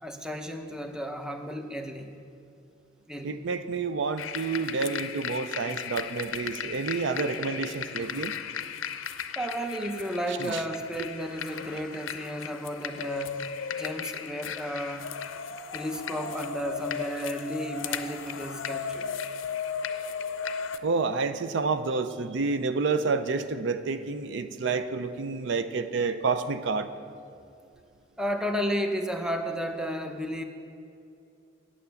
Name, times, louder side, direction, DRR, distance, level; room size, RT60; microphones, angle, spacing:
voice 1, 0.0-2.1 3.1-3.4 9.4-13.4 13.8-15.1 15.7-19.1 28.2-30.4, equal, 5° right, 5 dB, 0.7 m, -33 dB
voice 2, 3.2-8.3 10.3-10.6 20.8-26.9, right 4 dB, 65° right, 11 dB, 0.5 m, -29 dB
sound 1, 4.2-20.8, left 7 dB, 85° left, 0.5 m, -36 dB
9.2 x 8.6 x 6.9 m, 2.5 s
head